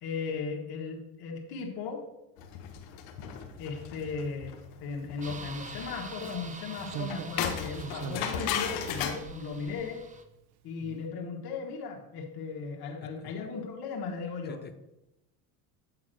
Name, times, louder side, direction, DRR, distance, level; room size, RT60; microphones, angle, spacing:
voice 1, 0.0-2.1 3.6-10.1 10.6-14.6, left 4 dB, 55° left, 1 dB, 1.7 m, -37 dB
sound 1, 2.4-9.2, left 8 dB, 75° left, 1.2 m, -36 dB
sound 2, 5.2-10.2, right 4 dB, 15° right, 0.7 m, -46 dB
Slam, 5.5-5.6 6.9-10.4 10.7-10.8, right 9 dB, 75° right, 0.8 m, -43 dB
voice 2, 10.8-11.0 13.2-13.3 14.5-14.8, left 7 dB, 25° left, 10 dB, 0.5 m, -46 dB
7.8 x 3.8 x 6.2 m, 0.90 s
supercardioid pair, 85°, 45 cm